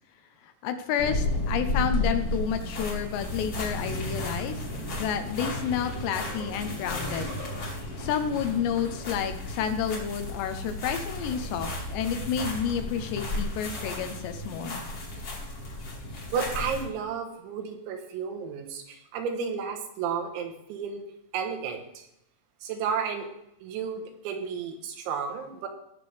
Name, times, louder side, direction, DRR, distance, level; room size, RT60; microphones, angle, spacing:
voice 1, 0.6-4.7 5.0-7.3 8.0-14.8, left 8 dB, 80° left, 7 dB, 2.8 m, -30 dB
sound 1, 1.0-16.9, left 2 dB, 40° left, 1.9 m, -33 dB
sound 2, 4.8-4.9 5.4-8.0, left 1 dB, 50° right, 1.5 m, -46 dB
voice 2, 16.3-21.0 21.3-22.1 22.6-23.3 23.6-25.7, right 6 dB, 90° right, 3 dB, 3.4 m, -32 dB
18.5 x 6.6 x 3.4 m, 0.78 s
omnidirectional pair, 5.3 m